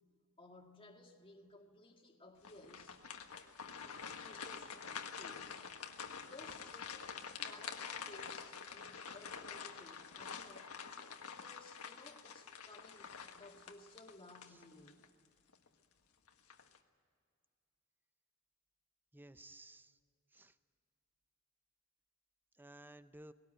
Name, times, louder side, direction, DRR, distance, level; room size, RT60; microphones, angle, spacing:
voice 1, 0.4-3.0 4.2-5.6 6.3-10.7 11.2-15.0, left 2 dB, 25° left, 2.1 m, -58 dB
sound 1, 2.4-15.1 15.5-15.7 16.3-16.8, left 6 dB, 85° left, 1.5 m, -47 dB
voice 2, 19.1-20.0 20.3-20.6 22.6-23.3, right 1 dB, 10° right, 0.7 m, -56 dB
20.0 x 18.0 x 9.1 m
head